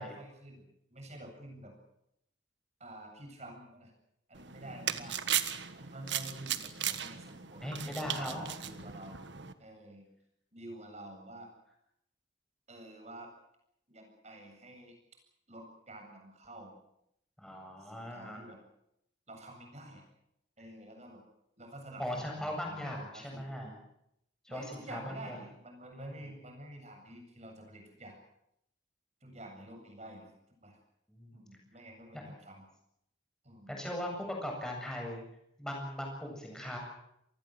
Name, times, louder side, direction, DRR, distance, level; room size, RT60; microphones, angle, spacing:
voice 1, 0.0-1.7 2.8-3.9 4.3-5.4 5.8-9.2 9.6-10.1 10.5-11.5 12.7-13.3 13.9-14.9 15.5-16.8 17.8-18.6 19.3-20.0 20.6-21.2 21.6-23.5 24.5-28.2 29.2-30.3 30.6-30.8 31.3-32.6 33.4-33.7, right 1 dB, 35° right, 3 dB, 7.9 m, -49 dB
sound 1, 4.4-9.5, right 10 dB, 70° right, 1.5 m, -37 dB
voice 2, 7.6-8.4 17.4-18.5 22.0-23.7 24.4-25.4 25.9-26.1 31.1-31.4 32.1-32.2 33.7-35.2 35.6-36.8, left 1 dB, 5° left, 1 dB, 7.8 m, -39 dB
27.0 x 20.0 x 7.9 m, 0.79 s
head